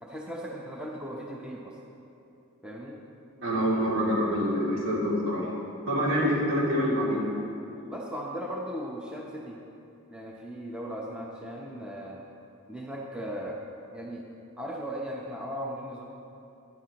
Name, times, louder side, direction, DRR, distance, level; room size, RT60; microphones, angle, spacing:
voice 1, 0.0-1.8 2.6-3.0 7.8-9.6 10.1-12.2 12.7-13.6 13.9-14.2 14.6-16.0, equal, 5° right, -3 dB, 0.7 m, -37 dB
voice 2, 3.4-5.5 5.9-7.3, equal, 65° right, -5 dB, 2.6 m, -26 dB
12.5 x 10.5 x 2.9 m, 2.9 s
head